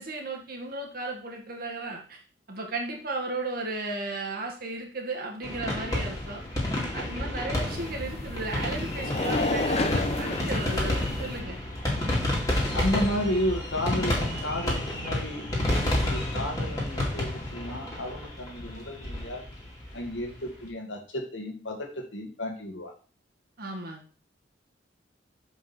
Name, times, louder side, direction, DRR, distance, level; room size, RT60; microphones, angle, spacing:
voice 1, 0.0-2.2 2.5-6.4 6.9-11.6 23.6-24.0, right 2 dB, 55° right, 1 dB, 1.9 m, -35 dB
sound 1, 5.4-20.4, left 1 dB, 20° left, 2.6 m, -30 dB
sound 2, 7.7-11.4, left 2 dB, 35° left, 0.9 m, -31 dB
voice 2, 12.7-19.4 19.9-22.9, equal, 80° left, 2 dB, 1.9 m, -32 dB
7.0 x 5.2 x 4.3 m, 0.38 s
head